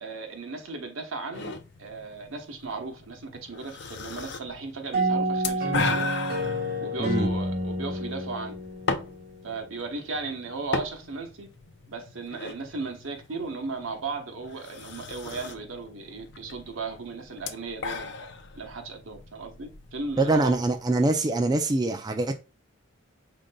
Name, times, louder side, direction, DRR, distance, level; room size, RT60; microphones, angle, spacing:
voice 1, 0.0-6.1 6.8-8.6 9.4-11.5 11.9-18.3 18.6-20.6, right 3 dB, 80° right, 1.0 m, -36 dB
sound 1, 1.3-21.0, left 4 dB, 60° left, 0.5 m, -37 dB
sound 2, 4.9-9.6, right 1 dB, 50° right, 1.2 m, -29 dB
voice 2, 20.2-22.4, right 2 dB, 20° right, 0.3 m, -24 dB
5.0 x 3.8 x 2.2 m
head